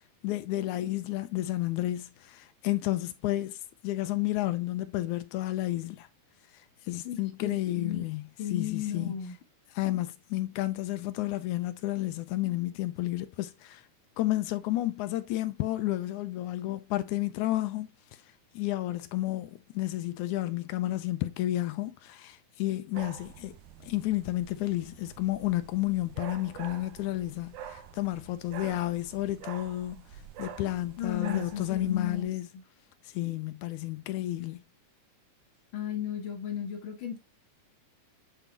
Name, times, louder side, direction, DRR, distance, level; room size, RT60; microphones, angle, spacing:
voice 1, 0.2-6.1 6.9-9.1 9.7-13.8 14.2-17.9 18.5-23.6 23.8-30.0 30.4-32.5 33.1-34.6, left 16 dB, 85° left, 2.0 m, -31 dB
voice 2, 7.0-8.1 8.4-9.4 31.0-32.6 35.7-37.2, left 9 dB, 60° left, 1.5 m, -35 dB
sound 1, 22.9-32.2, right 8 dB, 85° right, 2.4 m, -46 dB
9.1 x 4.4 x 2.9 m
omnidirectional pair, 3.5 m